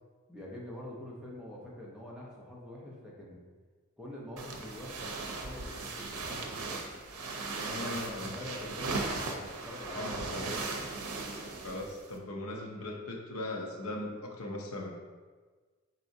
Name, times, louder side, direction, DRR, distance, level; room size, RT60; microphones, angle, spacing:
voice 1, 0.3-3.4 4.0-6.9 7.8-10.7, left 1 dB, 5° right, -5 dB, 0.7 m, -45 dB
sound 1, 4.4-12.2, right 3 dB, 85° right, 0.6 m, -38 dB
voice 2, 7.5-8.3 9.9-10.5 11.6-14.9, left 1 dB, 80° left, 2 dB, 0.6 m, -39 dB
4.6 x 3.9 x 2.6 m, 1.4 s
head